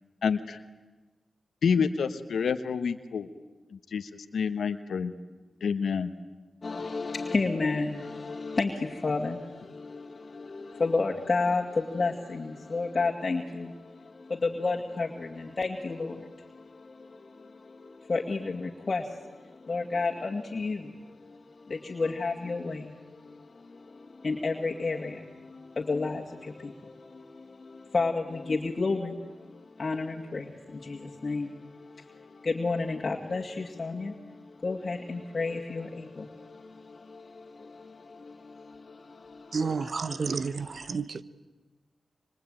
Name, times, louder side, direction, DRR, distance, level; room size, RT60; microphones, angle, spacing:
voice 1, 0.2-0.6 1.6-3.3 3.7-5.1 5.6-6.1, left 6 dB, 85° left, 1.2 m, -28 dB
voice 2, 6.6-39.6, left 3 dB, 50° left, 2.3 m, -32 dB
voice 3, 39.5-41.2, right 5 dB, 65° right, 1.1 m, -30 dB
26.0 x 25.0 x 9.1 m
cardioid pair, 55°, 0 cm